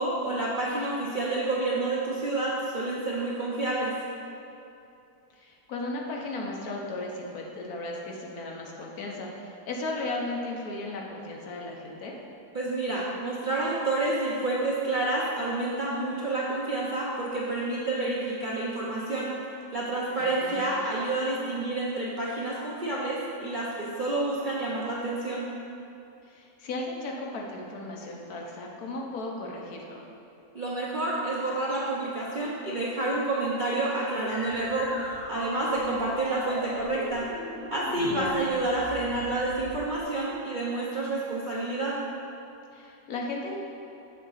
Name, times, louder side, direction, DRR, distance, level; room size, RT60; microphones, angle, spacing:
voice 1, 0.0-3.9 12.5-19.3 19.7-25.5 30.5-35.0 35.3-37.3 37.7-42.0, right 2 dB, 55° right, -6 dB, 0.5 m, -29 dB
voice 2, 5.4-12.2 20.2-20.7 26.2-30.0 38.1-38.5 42.7-43.6, left 2 dB, 70° left, -1 dB, 1.3 m, -35 dB
sound 1, 34.3-40.0, left 1 dB, 50° left, 1.2 m, -39 dB
6.8 x 3.6 x 5.5 m, 2.7 s
omnidirectional pair, 1.7 m